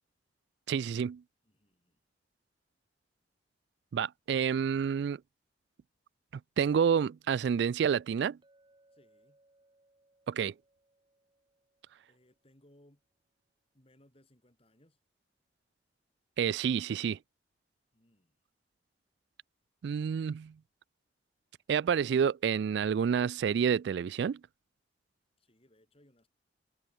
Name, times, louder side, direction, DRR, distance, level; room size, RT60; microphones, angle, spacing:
voice 1, 0.7-1.2 3.9-5.2 6.6-8.4 10.3-10.5 16.4-17.2 19.8-20.5 21.7-24.4, right 7 dB, 65° right, 0.3 m, -29 dB
voice 2, 1.4-2.0 8.9-9.4 12.1-13.0 13.7-15.0 17.9-18.4 25.4-26.3, left 1 dB, 30° left, 3.8 m, -65 dB
Chink clink, 8.4-12.6, right 1 dB, 25° right, 2.9 m, -69 dB
head